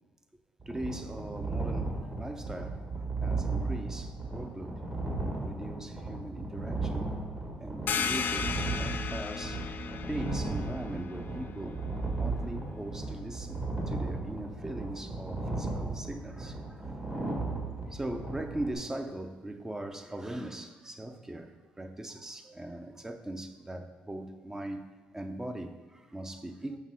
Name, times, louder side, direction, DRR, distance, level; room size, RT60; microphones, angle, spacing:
sound 1, 0.6-18.7, right 3 dB, 30° right, 1.7 m, -35 dB
voice 1, 0.7-2.9 3.2-4.8 5.4-7.2 7.6-9.7 9.9-11.8 12.2-17.3 17.9-26.8, right 1 dB, 15° right, 0.5 m, -40 dB
sound 2, 7.9-13.2, left 6 dB, 55° left, 0.4 m, -36 dB
5.7 x 3.7 x 6.0 m
cardioid pair, 85°, 4 cm